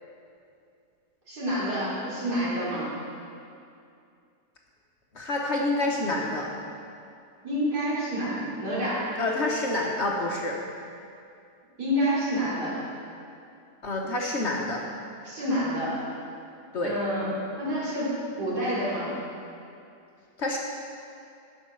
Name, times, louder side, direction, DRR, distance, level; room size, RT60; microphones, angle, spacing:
voice 1, 1.3-2.9 7.4-9.1 11.8-12.8 15.2-16.0 16.8-17.3 17.6-18.1 18.4-19.1, equal, 70° right, -8 dB, 3.7 m, -28 dB
voice 2, 5.1-6.5 9.2-10.6 13.8-14.8 16.7-16.9 20.4-20.6, left 2 dB, 50° left, -1 dB, 1.0 m, -27 dB
10.0 x 7.2 x 6.2 m, 2.5 s
omnidirectional pair, 1.8 m